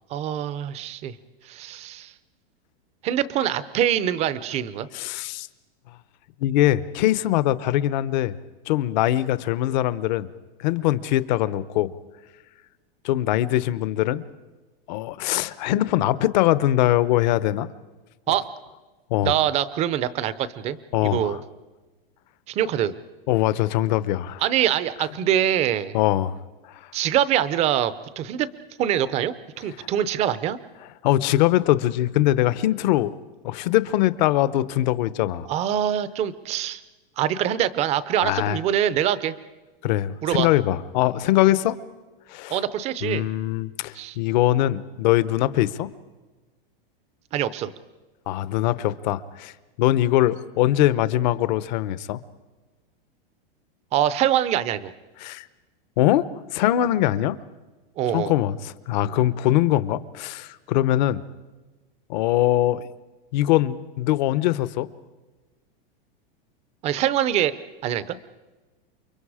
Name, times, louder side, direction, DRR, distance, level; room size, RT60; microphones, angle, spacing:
voice 1, 0.1-1.1 1.5-2.1 3.0-4.9 18.3-18.5 19.2-21.4 22.5-22.9 24.4-25.9 26.9-28.5 28.8-30.6 35.5-36.8 37.2-39.3 40.2-40.5 42.5-43.3 43.9-44.2 47.3-47.7 53.9-54.9 58.0-58.3 66.8-67.5 67.8-68.2, right 11 dB, 20° right, 16 dB, 0.6 m, -24 dB
voice 2, 4.9-5.5 6.4-8.3 8.7-10.3 10.6-11.9 13.0-14.2 14.9-17.7 19.1-19.3 20.9-21.4 23.3-24.4 25.9-26.4 31.0-33.1 33.4-35.5 38.2-38.6 39.8-41.8 42.3-42.6 43.0-45.9 48.3-49.5 49.8-52.2 55.2-55.5 56.0-57.4 58.1-61.2 62.1-62.8 63.3-64.9, left 14 dB, 50° left, 16 dB, 0.9 m, -22 dB
29.0 x 24.0 x 4.9 m, 1.2 s
supercardioid pair, 160°, 29 cm